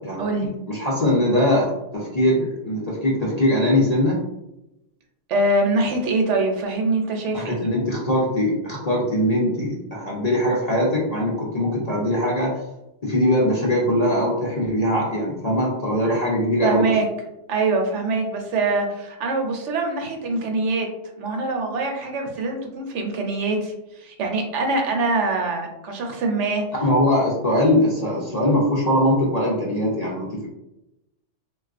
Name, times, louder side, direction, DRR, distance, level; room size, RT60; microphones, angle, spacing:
voice 1, 0.0-4.2 7.3-12.6 13.0-16.9 26.8-30.5, left 1 dB, 45° left, -4 dB, 0.6 m, -21 dB
voice 2, 5.3-7.7 16.6-17.1 17.5-20.9 21.2-23.7 24.0-26.6, right 3 dB, 75° right, 2 dB, 0.9 m, -23 dB
3.5 x 2.3 x 2.4 m, 0.89 s
omnidirectional pair, 1.3 m